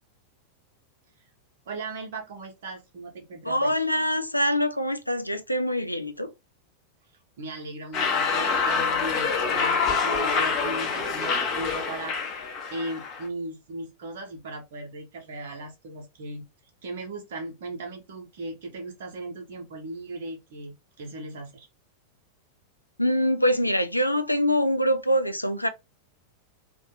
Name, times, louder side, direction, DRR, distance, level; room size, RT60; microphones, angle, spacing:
voice 1, 1.7-3.8 7.4-16.4 16.8-21.7, right 2 dB, 55° right, 0.7 m, -37 dB
voice 2, 3.5-6.3 23.0-25.7, equal, 85° left, 0.3 m, -24 dB
sound 1, 7.9-13.3, left 5 dB, 35° left, 0.6 m, -26 dB
2.4 x 2.2 x 3.0 m
figure-of-eight pair, 90°, 0 cm